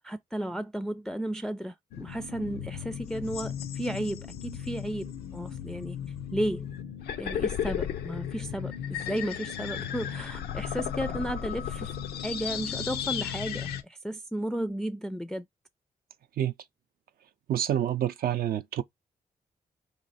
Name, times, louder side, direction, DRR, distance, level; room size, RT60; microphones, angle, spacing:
voice 1, 0.0-6.0 6.3-6.7 7.2-11.9 12.2-15.5, right 1 dB, 5° left, 0.3 m, -34 dB
sound 1, 1.9-13.8, left 9 dB, 85° left, 0.5 m, -35 dB
voice 2, 17.5-18.8, right 11 dB, 70° right, 0.4 m, -27 dB
3.2 x 2.4 x 4.0 m
supercardioid pair, 55°, 16 cm